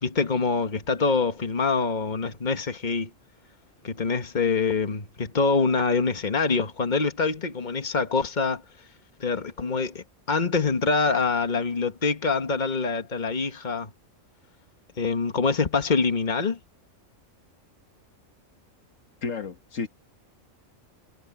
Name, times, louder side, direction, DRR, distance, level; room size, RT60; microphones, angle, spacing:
voice 1, 0.0-3.1 3.8-8.6 9.2-13.9 15.0-16.6, left 4 dB, 35° left, 1.7 m, -25 dB
voice 2, 19.2-19.9, left 5 dB, 80° left, 1.8 m, -31 dB
omnidirectional pair, 1.3 m